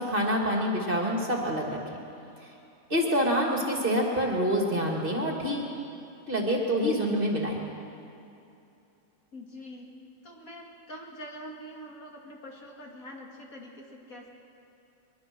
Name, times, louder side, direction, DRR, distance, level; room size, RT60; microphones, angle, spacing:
voice 1, 0.0-1.8 2.4-2.5 2.9-5.7 6.3-7.6, equal, 35° right, 0 dB, 2.7 m, -26 dB
voice 2, 9.3-9.9 10.2-14.3, equal, 60° left, -1 dB, 2.9 m, -44 dB
22.5 x 22.0 x 6.3 m, 2.7 s
omnidirectional pair, 1.7 m